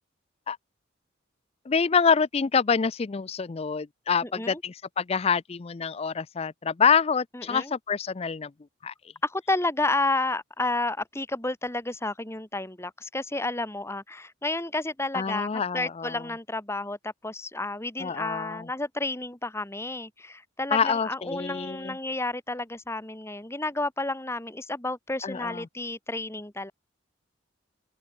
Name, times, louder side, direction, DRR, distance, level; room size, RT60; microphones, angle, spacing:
voice 1, 1.7-8.5 8.8-8.9 15.1-16.2 18.0-18.7 20.7-22.0 25.2-25.7, left 6 dB, 30° left, 0.4 m, -26 dB
voice 2, 4.2-4.6 7.3-7.7 9.2-15.5 15.7-26.7, left 2 dB, 15° left, 1.6 m, -31 dB
open air
head